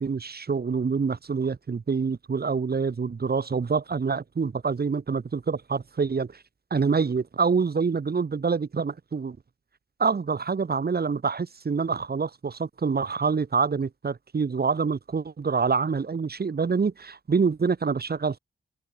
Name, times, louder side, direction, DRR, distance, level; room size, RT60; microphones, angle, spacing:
voice 1, 0.0-6.4 6.7-9.4 10.0-18.4, right 5 dB, 50° right, 1.2 m, -26 dB
wide cardioid pair, 105°, 21 cm